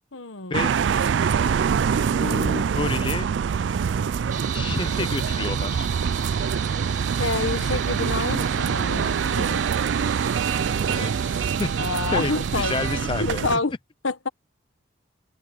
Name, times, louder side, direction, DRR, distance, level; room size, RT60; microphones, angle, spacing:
voice 1, 0.1-0.7 7.2-9.6 11.8-12.7 13.2-13.7 14.0-14.3, left 3 dB, 90° left, 1.4 m, -28 dB
sound 1, 0.5-13.6, right 7 dB, 65° right, 0.4 m, -24 dB
voice 2, 2.2-3.3 4.5-6.0 10.5-11.7 12.1-13.4, left 3 dB, 25° left, 0.4 m, -30 dB
sound 2, 4.3-13.0, right 8 dB, 40° right, 2.2 m, -36 dB
open air
head